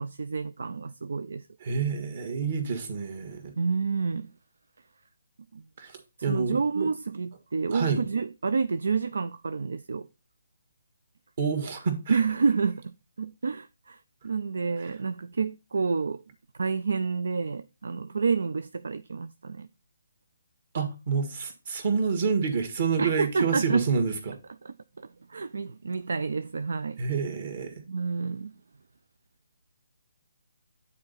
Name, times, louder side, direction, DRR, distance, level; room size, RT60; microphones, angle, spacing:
voice 1, 0.0-1.5 3.6-4.3 5.5-5.6 6.3-10.1 12.1-16.2 16.6-19.7 23.0-23.8 24.6-27.0 27.9-28.5, right 5 dB, 65° right, 0.3 m, -29 dB
voice 2, 1.6-3.5 5.8-6.9 7.7-8.0 11.4-12.2 20.7-24.4 27.0-27.8, right 5 dB, 45° right, 1.7 m, -28 dB
9.4 x 4.2 x 3.9 m
figure-of-eight pair, 145°, 0 cm